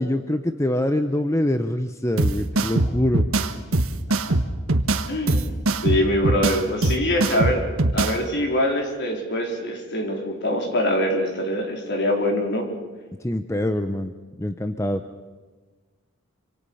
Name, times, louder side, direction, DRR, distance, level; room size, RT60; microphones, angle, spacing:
voice 1, 0.0-3.2 13.2-14.1 14.4-15.0, left 1 dB, 15° left, 8 dB, 0.8 m, -24 dB
sound 1, 2.2-8.2, right 2 dB, 75° right, 1.4 m, -22 dB
voice 2, 5.1-5.5 5.8-7.6 7.9-12.7, left 1 dB, 55° left, 2 dB, 4.4 m, -24 dB
26.5 x 26.0 x 5.6 m, 1.3 s
head